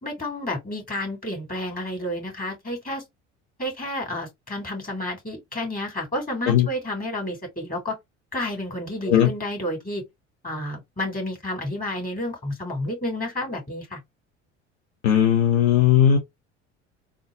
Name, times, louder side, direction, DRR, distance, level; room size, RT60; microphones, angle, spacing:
voice 1, 0.0-3.0 3.6-8.0 8.3-10.0 10.4-14.0, left 1 dB, 20° left, 2.7 m, -30 dB
voice 2, 15.0-16.2, left 9 dB, 70° left, 0.9 m, -17 dB
3.8 x 2.4 x 3.7 m
figure-of-eight pair, 65°, 37 cm